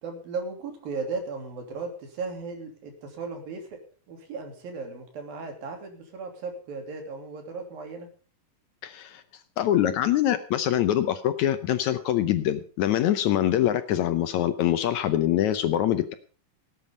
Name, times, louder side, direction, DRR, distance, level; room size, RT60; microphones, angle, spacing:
voice 1, 0.0-3.8 4.1-8.1, right 4 dB, 90° right, 4 dB, 4.8 m, -36 dB
voice 2, 8.8-9.2 9.6-16.1, left 11 dB, 70° left, 10 dB, 1.9 m, -24 dB
18.0 x 9.1 x 5.3 m, 0.39 s
omnidirectional pair, 4.0 m